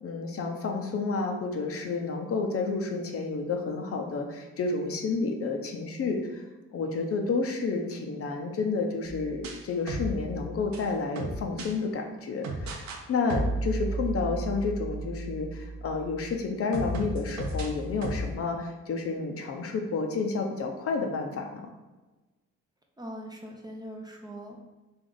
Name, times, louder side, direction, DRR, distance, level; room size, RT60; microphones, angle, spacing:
voice 1, 0.0-6.4 6.7-21.7, left 4 dB, 50° left, 3 dB, 0.6 m, -30 dB
sound 1, 9.1-11.7 12.4-13.0 13.3-16.3 16.7-18.3, right 1 dB, 65° right, 0.7 m, -34 dB
voice 2, 23.0-24.6, equal, 15° right, 1 dB, 0.5 m, -41 dB
3.5 x 2.5 x 3.8 m, 1.2 s
cardioid pair, 90°, 30 cm